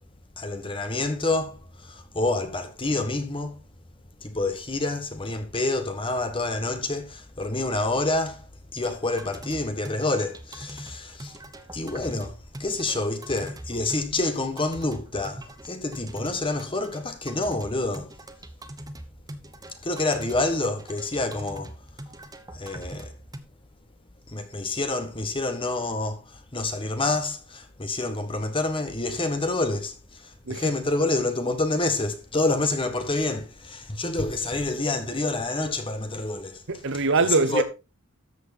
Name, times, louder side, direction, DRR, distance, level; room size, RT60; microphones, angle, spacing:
voice 1, 0.4-3.6 4.2-11.4 11.7-18.1 19.8-21.7 22.5-23.1 24.3-36.6 37.5-37.6, left 2 dB, 25° left, 1.5 m, -28 dB
sound 1, 8.8-23.4, right 1 dB, 15° right, 1.1 m, -42 dB
voice 2, 36.7-37.6, right 3 dB, 55° right, 1.0 m, -23 dB
13.5 x 6.4 x 4.2 m
head